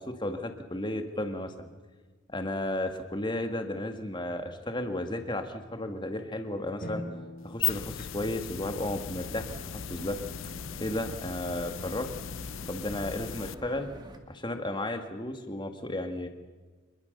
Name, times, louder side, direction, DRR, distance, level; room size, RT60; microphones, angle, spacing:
voice 1, 0.0-1.7 2.3-7.0 7.4-9.5 9.7-10.2 10.8-12.1 12.7-13.9 14.3-16.3, left 1 dB, 20° left, 6 dB, 1.9 m, -33 dB
sound 1, 5.7-8.7, left 1 dB, 45° left, 3.4 m, -44 dB
sound 2, 7.4-13.5, left 10 dB, 65° left, 0.6 m, -37 dB
sound 3, 9.2-14.2, right 1 dB, 20° right, 1.8 m, -48 dB
26.5 x 21.5 x 6.7 m, 1.4 s
head